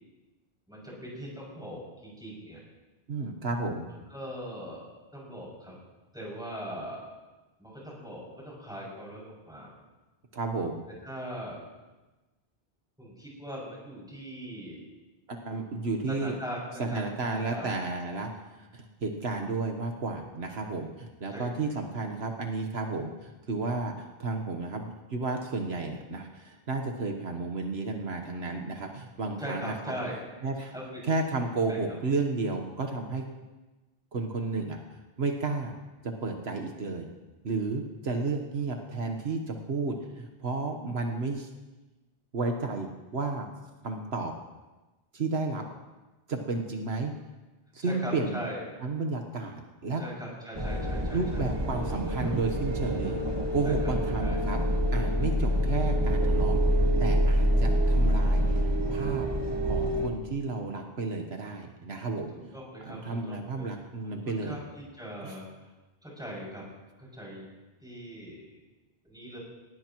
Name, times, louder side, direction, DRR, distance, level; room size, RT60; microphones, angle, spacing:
voice 1, 0.7-2.6 4.1-4.9 5.1-5.8 6.1-7.0 7.6-9.7 11.0-11.6 13.0-14.8 16.1-17.7 21.3-21.5 29.4-30.1 30.7-31.1 31.7-31.8 47.8-48.6 50.0-51.4 52.0-52.3 53.6-53.9 54.2-54.4 62.3-63.7 64.0-65.5 66.0-66.6 67.0-67.4 67.8-68.6 69.0-69.4, equal, 5° right, -5 dB, 6.4 m, -40 dB
voice 2, 3.1-3.9 10.3-10.8 15.3-16.4 16.8-29.7 30.4-30.7 31.0-33.2 34.1-35.7 36.0-37.1 37.4-41.5 42.3-43.5 43.8-44.3 45.1-45.6 46.3-47.1 47.7-48.4 48.8-50.0 51.1-53.2 53.5-54.6 54.9-56.6 57.0-58.6 58.9-59.3 59.6-62.3 62.8-64.6 65.2-65.3, right 3 dB, 75° right, 3 dB, 1.4 m, -32 dB
sound 1, 50.5-60.1, equal, 25° right, 1.4 m, -26 dB
19.0 x 19.0 x 3.0 m, 1.1 s
omnidirectional pair, 1.1 m